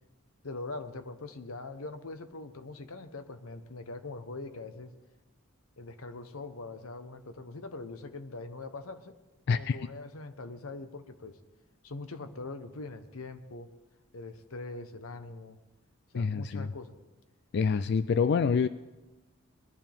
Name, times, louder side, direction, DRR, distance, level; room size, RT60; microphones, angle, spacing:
voice 1, 0.4-4.9 5.8-9.2 9.5-11.4 11.8-13.7 14.1-15.6 16.1-17.0, left 3 dB, 85° left, 10 dB, 1.0 m, -42 dB
voice 2, 16.1-16.7 17.5-18.7, left 5 dB, 50° left, 13 dB, 0.3 m, -26 dB
20.0 x 11.5 x 3.5 m, 1.1 s
head